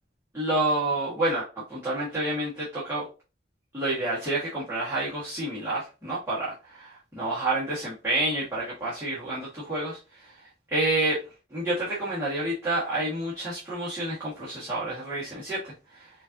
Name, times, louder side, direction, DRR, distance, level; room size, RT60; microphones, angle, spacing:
voice 1, 0.3-3.1 3.7-11.2 11.5-16.1, right 2 dB, 15° right, -9 dB, 1.3 m, -29 dB
5.1 x 2.6 x 2.6 m, 0.31 s
head